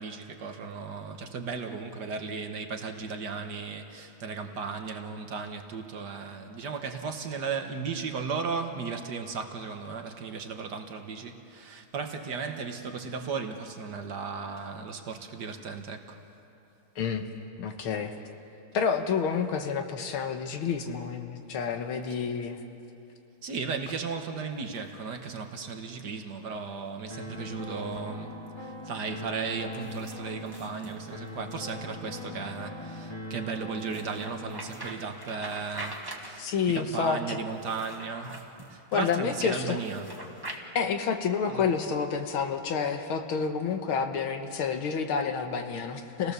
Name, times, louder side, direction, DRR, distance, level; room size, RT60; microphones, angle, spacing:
voice 1, 0.0-16.2 23.4-40.1 41.5-41.7, right 5 dB, 55° right, 1.6 m, -36 dB
voice 2, 17.0-17.3 17.6-18.1 18.7-22.6 36.4-37.4 38.9-39.8 40.8-46.3, left 6 dB, 75° left, 2.0 m, -29 dB
sound 1, 24.5-25.5 27.7-28.1 29.7-31.7 33.8-36.7 37.5-38.7 39.7-40.6, right 1 dB, 10° right, 1.5 m, -44 dB
sound 2, 27.1-35.1, left 1 dB, 15° left, 1.4 m, -40 dB
29.0 x 17.5 x 6.8 m
omnidirectional pair, 2.3 m